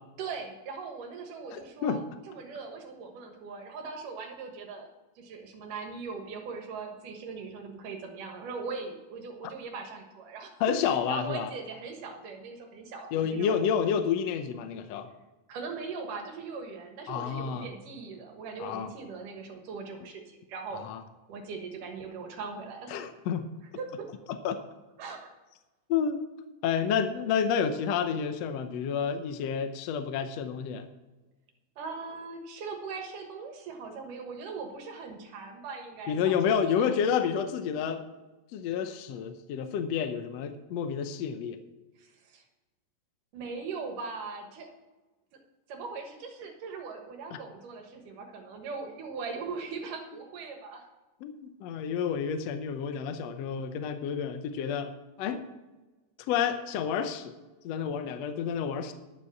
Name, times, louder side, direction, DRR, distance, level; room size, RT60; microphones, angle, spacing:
voice 1, 0.2-4.9 5.2-13.6 15.5-20.9 21.3-23.0 23.8-24.1 25.0-25.3 31.8-36.4 36.8-36.9 42.0-42.4 43.3-44.7 45.7-50.9, right 4 dB, 70° right, 3 dB, 2.9 m, -40 dB
voice 2, 1.5-2.0 10.6-11.5 13.1-15.1 17.1-17.7 18.6-18.9 20.8-21.0 22.9-23.5 24.4-24.6 25.9-26.2 26.6-30.9 36.1-38.0 38.5-41.6 51.2-54.9 55.2-55.4 56.3-57.3 57.6-58.9, left 7 dB, 70° left, 8 dB, 1.6 m, -29 dB
11.5 x 7.2 x 7.2 m, 1.1 s
omnidirectional pair, 3.9 m